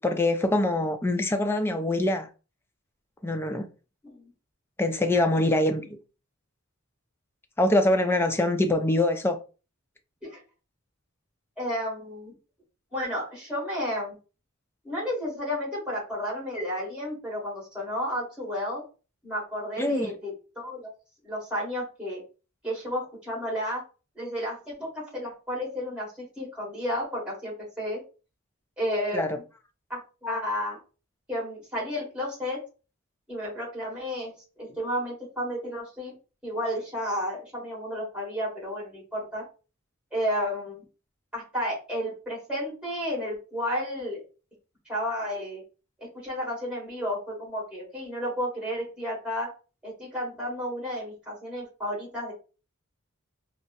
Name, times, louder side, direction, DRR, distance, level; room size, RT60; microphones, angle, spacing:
voice 1, 0.0-2.3 3.2-3.7 4.8-5.8 7.6-9.4 19.8-20.1 29.1-29.3, left 1 dB, 10° left, 0.3 m, -24 dB
voice 2, 11.6-12.3 12.9-14.1 14.8-18.8 19.2-20.9 21.2-22.2 22.6-23.8 24.2-28.0 28.8-29.4 29.9-30.8 31.3-32.6 33.3-36.1 36.4-39.4 40.1-40.8 41.3-44.2 44.9-45.6 46.0-49.5 49.8-52.3, equal, 5° right, 1.8 m, -32 dB
4.1 x 2.3 x 2.6 m
head